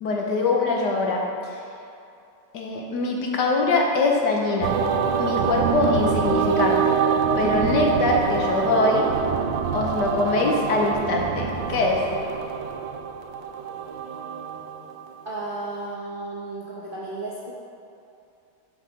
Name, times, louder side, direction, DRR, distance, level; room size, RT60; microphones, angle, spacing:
voice 1, 0.0-1.2 2.5-4.7 5.2-7.0 7.3-9.1 9.7-12.0, left 3 dB, 65° left, 0 dB, 1.3 m, -23 dB
sound 1, 4.6-15.0, right 7 dB, 75° right, 1.2 m, -25 dB
voice 2, 15.2-17.5, right 2 dB, 50° right, -6 dB, 0.6 m, -34 dB
7.3 x 4.8 x 5.0 m, 2.6 s
omnidirectional pair, 2.1 m